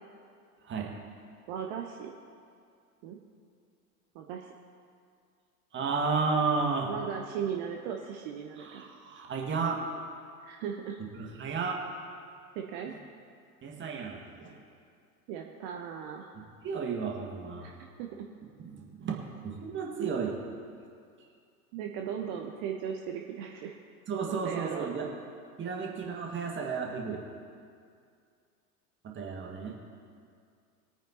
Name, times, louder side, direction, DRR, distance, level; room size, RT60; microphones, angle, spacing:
voice 1, 1.5-2.1 3.0-3.2 4.1-4.5 6.9-8.8 10.4-11.0 12.5-12.9 15.3-16.3 17.6-18.3 21.7-23.8 24.3-24.9, right 8 dB, 45° right, 2 dB, 1.1 m, -37 dB
voice 2, 5.7-6.9 8.6-9.8 11.1-11.8 12.9-13.0 13.6-14.5 16.6-17.7 18.6-19.1 19.4-20.4 24.1-25.1 25.6-27.2 29.0-29.8, right 5 dB, 25° right, -1 dB, 1.9 m, -32 dB
22.0 x 9.1 x 2.9 m, 2.3 s
figure-of-eight pair, 80°, 45 cm